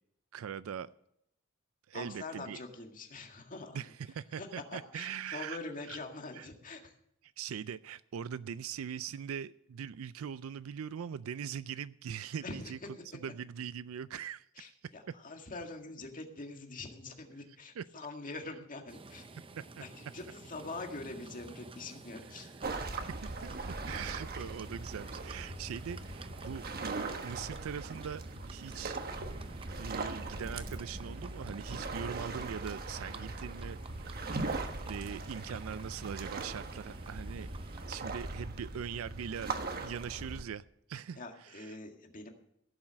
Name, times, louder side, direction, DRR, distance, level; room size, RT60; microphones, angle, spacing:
voice 1, 0.3-0.9 1.9-2.6 3.7-5.6 5.9-6.0 6.3-6.5 7.4-12.8 13.2-14.7 17.8-17.9 23.2-29.0 29.7-34.6 34.8-37.5 37.9-41.2 41.5-41.7, right 7 dB, 80° right, 16 dB, 0.4 m, -41 dB
voice 2, 1.9-3.8 4.1-6.9 12.4-12.9 14.6-19.3 19.8-22.5 41.2-42.3, left 3 dB, 40° left, 3 dB, 1.9 m, -44 dB
Livestock farm animals working animals, 18.9-37.9, right 3 dB, 25° right, 0.7 m, -51 dB
sound 1, 22.6-40.4, right 3 dB, 45° right, 1.2 m, -40 dB
16.0 x 7.4 x 6.3 m, 0.76 s
head